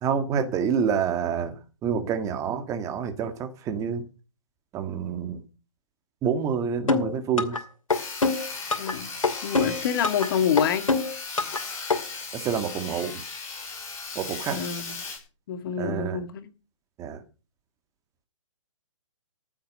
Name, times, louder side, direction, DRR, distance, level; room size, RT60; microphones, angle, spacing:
voice 1, 0.0-1.5 1.8-4.0 4.7-5.4 6.2-7.6 12.3-13.2 14.1-14.6 15.8-16.2 17.0-17.2, right 7 dB, 20° right, 1.8 m, -27 dB
sound 1, 6.9-7.6 7.9-8.9 9.2-10.3 10.6-11.6 11.9-12.0, left 3 dB, 80° left, 2.6 m, -24 dB
Sawing, 7.9-15.2, left 4 dB, 15° left, 5.6 m, -37 dB
voice 2, 8.8-9.1 9.4-10.9 14.5-15.0 15.5-16.5, left 8 dB, 40° left, 1.8 m, -27 dB
14.5 x 8.7 x 6.5 m
figure-of-eight pair, 135°, 17 cm